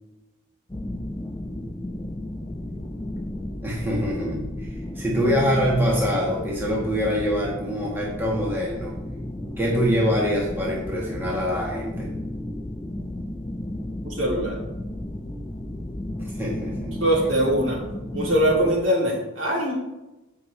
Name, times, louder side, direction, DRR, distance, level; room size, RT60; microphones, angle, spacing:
sound 1, 0.7-18.7, left 1 dB, 15° left, 0.5 m, -33 dB
voice 1, 3.6-9.0 9.6-12.1 16.2-17.0, equal, 10° right, -4 dB, 1.5 m, -25 dB
voice 2, 14.0-14.6 17.0-17.8 18.1-19.7, equal, 55° right, -2 dB, 2.8 m, -22 dB
14.5 x 5.7 x 3.3 m, 1.0 s
head